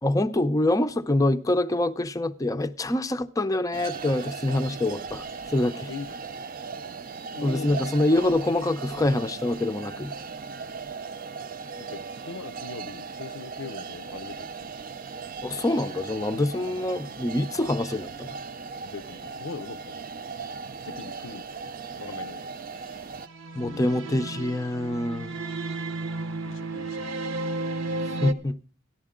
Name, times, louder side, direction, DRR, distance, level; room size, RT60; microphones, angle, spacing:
voice 1, 0.0-5.9 7.4-10.1 15.4-18.3 23.6-25.4 28.2-28.6, left 1 dB, 15° left, 0.5 m, -25 dB
sound 1, 3.7-23.3, right 5 dB, 45° right, 0.4 m, -38 dB
voice 2, 7.4-7.9 11.8-14.7 17.9-18.0 18.8-20.0 20.8-21.5 22.0-23.1 23.6-23.9 26.4-27.5 27.8-28.0, left 5 dB, 70° left, 0.5 m, -41 dB
sound 2, 23.2-28.3, right 2 dB, 70° right, 0.8 m, -33 dB
14.0 x 11.0 x 3.7 m
head